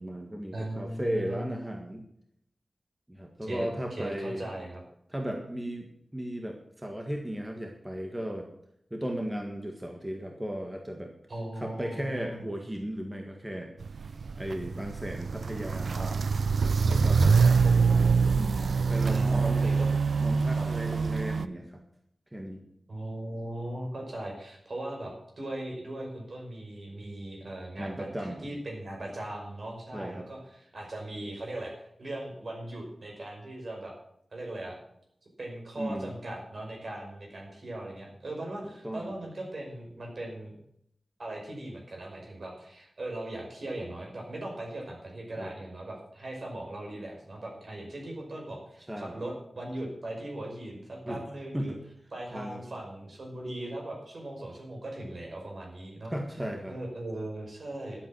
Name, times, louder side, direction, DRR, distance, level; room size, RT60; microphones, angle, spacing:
voice 1, 0.0-2.0 3.1-4.5 5.1-8.5 8.9-11.1 11.6-13.7 14.4-16.0 16.8-17.7 18.4-19.8 20.2-21.8 22.3-22.6 27.8-28.5 29.9-30.3 35.8-36.1 38.8-39.1 45.4-45.5 48.9-49.2 51.0-51.2 51.5-51.8 52.3-52.6 56.1-56.8, equal, 10° right, 2 dB, 1.6 m, -36 dB
voice 2, 0.5-1.5 3.4-4.8 11.3-12.4 16.0-16.1 17.3-17.8 19.0-19.9 20.5-20.7 22.9-33.9 34.3-34.8 35.4-40.5 41.2-51.7 52.1-56.1 56.7-58.1, right 1 dB, 60° right, 0 dB, 5.3 m, -39 dB
Walk footsteps, 13.8-21.5, right 5 dB, 85° right, 0.5 m, -25 dB
12.0 x 8.4 x 7.7 m, 0.73 s
wide cardioid pair, 105°, 0 cm